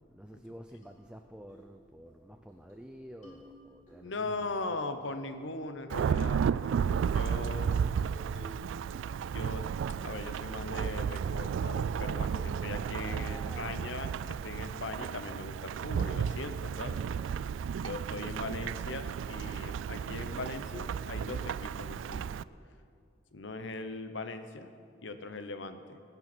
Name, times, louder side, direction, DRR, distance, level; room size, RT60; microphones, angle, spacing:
voice 1, 0.1-4.4 12.6-14.8, equal, 5° right, 5 dB, 0.5 m, -50 dB
sound 1, 0.8-0.9 1.5-1.7 2.1-2.2 2.5-2.9 3.2-4.0 5.0-5.6 6.0-6.3 6.9-7.1 8.1-8.7 9.0-9.7 10.1-10.2 10.5-10.7 11.1-11.2 11.7-12.1 12.3-12.8, equal, 40° left, 4.1 m, -52 dB
voice 2, 4.0-8.0 9.3-9.7 10.0-17.0 17.8-22.3 23.3-24.7 25.0-26.0, left 3 dB, 70° left, 9 dB, 0.9 m, -40 dB
Thunderstorm / Rain, 5.9-22.4, right 7 dB, 80° right, 0.3 m, -33 dB
20.5 x 9.0 x 6.1 m, 2.4 s
head